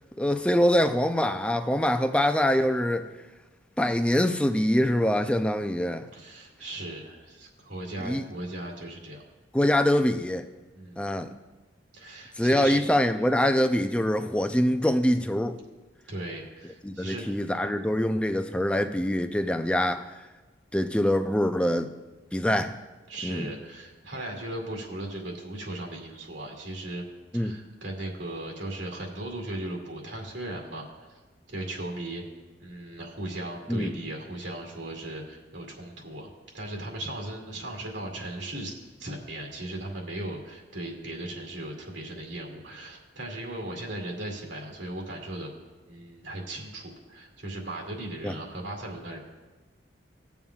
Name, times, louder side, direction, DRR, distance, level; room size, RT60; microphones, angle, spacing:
voice 1, 0.2-3.1 3.8-6.1 8.0-8.2 9.5-10.5 11.0-11.3 12.4-15.6 16.8-20.1 20.7-21.9 22.3-22.8 23.2-23.5 27.3-27.6 33.7-33.9 48.2-48.3, left 1 dB, 5° left, 7 dB, 0.4 m, -24 dB
voice 2, 6.1-9.2 10.7-11.1 11.9-12.8 16.1-17.4 23.1-27.1 27.3-31.1 31.5-32.2 32.6-36.3 36.5-45.5 45.9-49.2, right 1 dB, 80° right, -1 dB, 2.3 m, -37 dB
20.0 x 7.1 x 2.4 m, 1.2 s
head